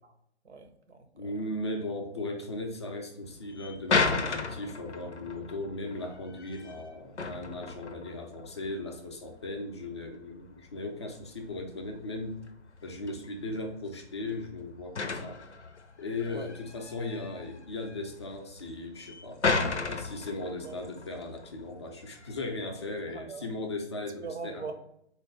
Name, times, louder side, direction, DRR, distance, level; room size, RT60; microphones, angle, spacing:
voice 1, 0.4-1.3 9.5-9.6 16.3-16.5 19.4-20.0 20.4-20.8 23.1-23.5 24.2-24.7, right 4 dB, 75° right, 0.7 m, -42 dB
voice 2, 1.1-12.4 12.8-15.4 16.0-19.4 19.9-24.7, left 2 dB, 25° left, 0.4 m, -37 dB
sound 1, 3.3-23.0, left 4 dB, 90° left, 0.5 m, -36 dB
3.9 x 2.1 x 3.1 m
figure-of-eight pair, 130°, 34 cm